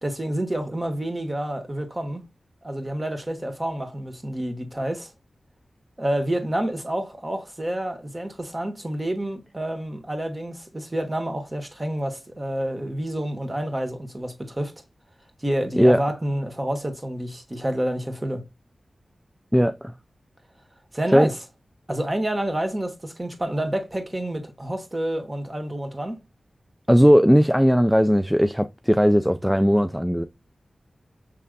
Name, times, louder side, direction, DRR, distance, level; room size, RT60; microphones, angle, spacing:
voice 1, 0.0-2.2 2.6-5.1 6.0-14.7 15.4-18.4 20.9-21.4 21.9-26.2, right 1 dB, 25° right, 1.5 m, -28 dB
voice 2, 19.5-19.9 21.1-21.3 26.9-30.2, equal, 5° right, 0.3 m, -18 dB
6.4 x 3.4 x 2.2 m
cardioid pair, 60°, 0 cm